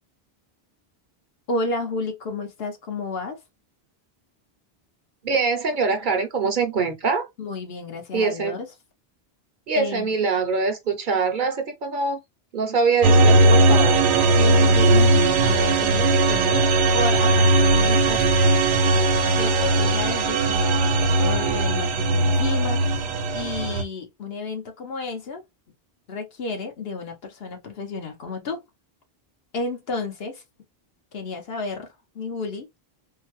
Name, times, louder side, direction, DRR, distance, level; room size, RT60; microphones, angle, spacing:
voice 1, 1.5-3.4 7.4-8.7 9.8-10.1 14.1-18.6 19.4-23.1 23.3-25.4 26.1-28.6 29.5-30.4 31.1-31.9 32.1-32.7, left 3 dB, 70° left, 1.1 m, -31 dB
voice 2, 5.2-7.3 8.1-8.6 9.7-12.2 12.5-14.0, right 4 dB, 55° right, 0.7 m, -23 dB
sound 1, 13.0-23.8, right 2 dB, 80° right, 0.9 m, -18 dB
3.7 x 2.1 x 3.0 m
omnidirectional pair, 1.1 m